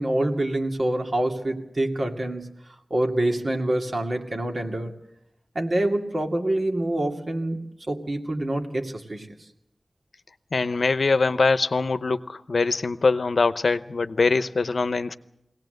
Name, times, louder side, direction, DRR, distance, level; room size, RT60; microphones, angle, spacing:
voice 1, 0.0-2.5 2.9-4.9 5.5-7.6 7.9-9.3, right 1 dB, 55° right, 3 dB, 2.4 m, -26 dB
voice 2, 10.5-15.2, left 3 dB, 75° left, 12 dB, 0.8 m, -23 dB
21.5 x 18.0 x 7.9 m, 0.82 s
wide cardioid pair, 70°, 0 cm